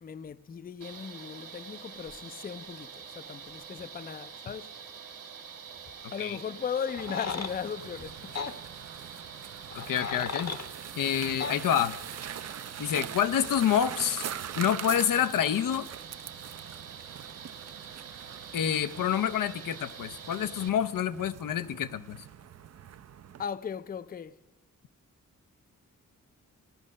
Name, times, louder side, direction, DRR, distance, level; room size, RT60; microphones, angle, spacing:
voice 1, 0.0-4.7 6.1-8.6 23.4-24.4, left 7 dB, 30° left, 0.4 m, -37 dB
sound 1, 0.8-20.7, right 7 dB, 80° right, 1.7 m, -46 dB
sound 2, 6.9-7.5 8.3-8.5 9.7-10.7 11.4-11.6, left 5 dB, 55° left, 0.9 m, -35 dB
sound 3, 7.0-23.5, right 9 dB, 55° right, 0.5 m, -43 dB
voice 2, 9.7-10.6 11.0-12.0 12.8-14.3 14.6-15.9 18.5-22.2, left 9 dB, 85° left, 0.7 m, -28 dB
15.5 x 11.0 x 6.4 m
wide cardioid pair, 90°, 32 cm